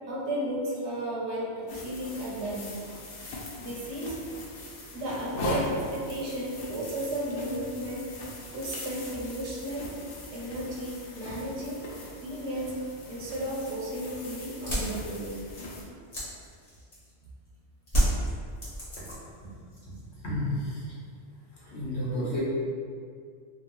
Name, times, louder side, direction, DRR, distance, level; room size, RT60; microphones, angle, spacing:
voice 1, 0.1-2.6 3.6-4.2 4.9-8.1 8.5-10.0 10.3-12.8 13.1-15.4, right 1 dB, 85° right, -3 dB, 0.9 m, -34 dB
sound 1, 1.7-15.8, left 1 dB, 90° left, 0.9 m, -40 dB
sound 2, 14.7-17.2 17.9-19.4 19.7-20.3, right 1 dB, 35° left, 1.0 m, -30 dB
voice 2, 20.2-20.9 21.6-22.4, left 1 dB, 75° left, -7 dB, 1.1 m, -31 dB
2.8 x 2.1 x 2.9 m, 2.2 s
omnidirectional pair, 1.1 m